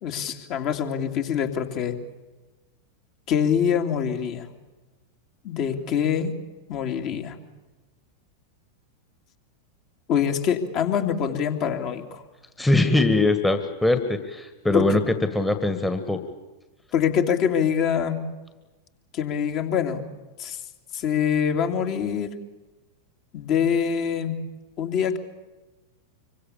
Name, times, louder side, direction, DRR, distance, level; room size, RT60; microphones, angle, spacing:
voice 1, 0.0-2.0 3.3-4.5 5.4-6.3 6.7-7.4 10.1-12.2 14.7-14.9 16.9-18.2 19.1-20.1 20.4-20.6 20.9-22.3 23.3-24.3 24.8-25.2, left 8 dB, 40° left, 4 dB, 2.7 m, -24 dB
voice 2, 12.6-16.2, left 2 dB, 5° left, 7 dB, 1.8 m, -22 dB
26.0 x 24.5 x 7.1 m, 1.2 s
figure-of-eight pair, 90°, 0 cm